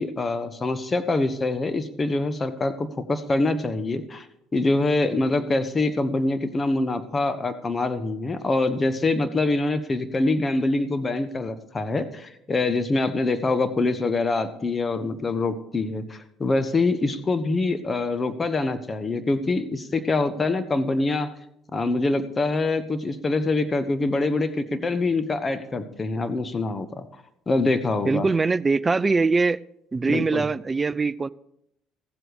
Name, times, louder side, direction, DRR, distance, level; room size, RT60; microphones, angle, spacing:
voice 1, 0.0-4.2 4.5-21.3 21.7-27.1 27.5-28.3 30.1-30.5, left 2 dB, 30° left, 1.2 m, -25 dB
voice 2, 28.0-29.6 29.9-31.3, right 4 dB, 25° right, 0.4 m, -22 dB
15.0 x 7.8 x 5.0 m
hypercardioid pair, 65°, 0 cm